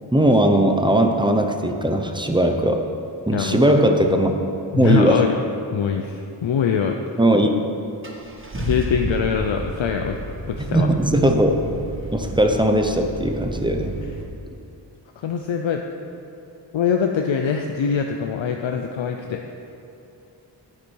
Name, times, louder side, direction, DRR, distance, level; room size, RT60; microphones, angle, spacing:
voice 1, 0.1-2.8 3.3-4.3 4.8-5.3 7.2-7.5 10.6-11.6 12.1-14.0, right 1 dB, 10° right, 5 dB, 0.8 m, -18 dB
voice 2, 4.7-5.3 5.7-7.0 8.6-10.2 10.5-10.9 15.2-15.8 16.7-19.4, left 7 dB, 85° left, 3 dB, 0.7 m, -23 dB
Car / Engine starting, 7.3-7.4 8.0-14.2, right 1 dB, 25° right, 1.3 m, -32 dB
9.9 x 9.9 x 4.6 m, 2.7 s
wide cardioid pair, 105°, 44 cm